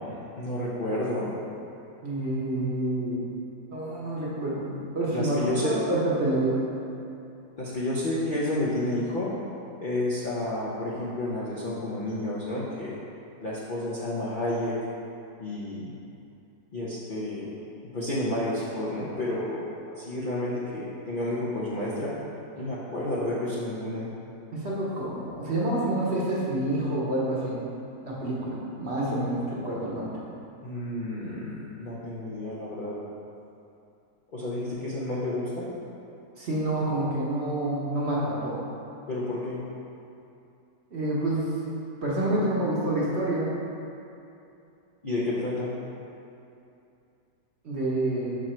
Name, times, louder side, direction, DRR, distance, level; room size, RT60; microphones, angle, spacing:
voice 1, 0.0-1.4 5.1-5.8 7.6-9.3 9.8-13.0 13.4-14.8 15.4-15.9 16.7-17.5 17.9-22.1 22.6-24.1 30.6-33.0 34.3-35.7 39.1-39.6 45.0-45.7, left 1 dB, 50° left, -8 dB, 0.6 m, -30 dB
voice 2, 2.0-3.2 3.7-6.7 24.5-27.6 28.0-30.2 36.4-38.6 40.9-41.5 42.0-43.5 47.6-48.4, right 1 dB, 45° right, -6 dB, 1.1 m, -28 dB
5.9 x 4.9 x 4.3 m, 2.7 s
omnidirectional pair, 1.9 m